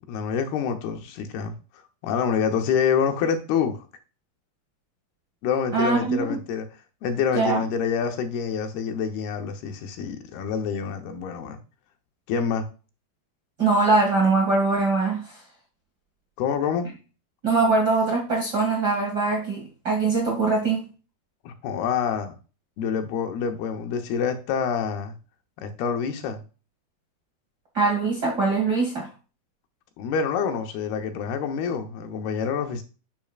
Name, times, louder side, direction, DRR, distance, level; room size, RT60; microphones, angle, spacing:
voice 1, 0.1-1.5 2.0-3.8 5.4-6.7 7.0-11.6 12.3-12.7 16.4-16.9 21.4-22.3 22.8-25.2 25.6-26.4 30.0-32.8, left 6 dB, 80° left, 2.8 m, -26 dB
voice 2, 5.7-6.4 7.3-7.6 13.6-15.4 17.4-20.8 27.7-29.1, right 3 dB, 40° right, 1.6 m, -22 dB
10.5 x 6.2 x 2.4 m
omnidirectional pair, 4.6 m